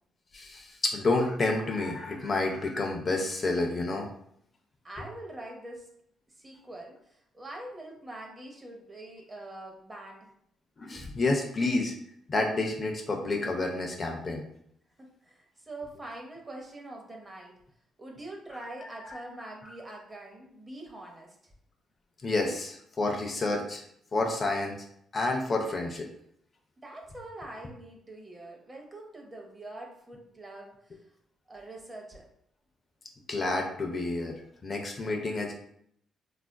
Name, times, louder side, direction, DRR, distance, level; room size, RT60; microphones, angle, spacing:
voice 1, 0.3-4.1 10.8-11.9 12.3-14.5 19.1-19.2 22.2-23.8 24.1-24.8 25.1-26.1 33.3-35.5, left 2 dB, 35° left, 2 dB, 0.5 m, -29 dB
voice 2, 4.8-5.9 6.4-10.3 15.0-17.6 18.0-21.5 26.8-31.0 31.5-32.3, right 1 dB, 20° right, 1 dB, 0.7 m, -44 dB
3.3 x 2.4 x 2.2 m, 0.71 s
cardioid pair, 90°, 0 cm